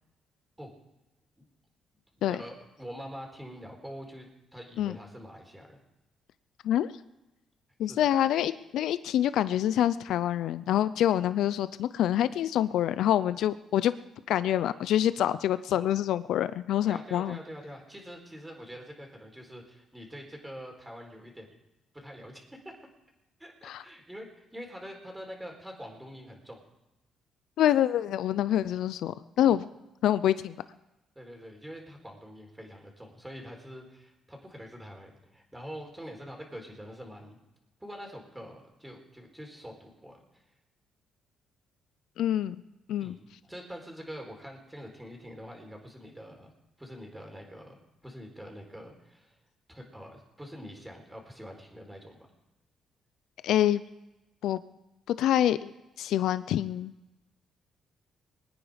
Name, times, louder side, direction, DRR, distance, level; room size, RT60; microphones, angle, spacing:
voice 1, 2.3-5.8 7.8-8.1 15.7-15.9 16.8-21.5 21.9-22.7 23.4-26.6 31.1-37.4 37.8-40.4 43.0-43.2 43.5-46.5 46.8-47.8 48.0-49.4 49.7-52.2, equal, 10° right, 2 dB, 4.2 m, -45 dB
voice 2, 7.8-13.9 14.3-17.4 23.6-23.8 27.6-29.7 30.0-30.6 42.2-42.6 42.9-43.2 53.4-53.8 54.4-54.6 55.2-55.7 56.0-56.9, left 11 dB, 80° left, 15 dB, 0.5 m, -26 dB
22.5 x 9.7 x 5.1 m, 0.99 s
cardioid pair, 90°, 0 cm